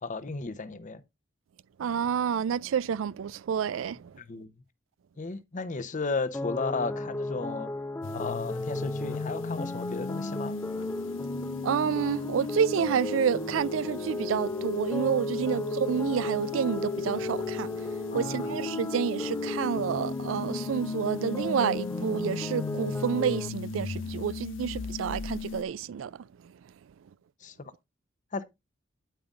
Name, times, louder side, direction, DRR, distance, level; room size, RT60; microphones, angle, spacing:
voice 1, 0.0-1.0 4.2-4.5 5.2-7.7 8.1-10.5 15.3-15.4 18.1-18.5 27.4-27.5 28.3-28.4, left 3 dB, 40° left, 0.8 m, -34 dB
voice 2, 1.8-4.1 11.6-17.7 18.1-26.2, right 7 dB, 90° right, 0.4 m, -29 dB
sound 1, 6.3-23.5, left 2 dB, 10° left, 0.5 m, -36 dB
sound 2, 8.0-25.6, left 4 dB, 75° left, 0.7 m, -36 dB
9.0 x 8.7 x 2.5 m
head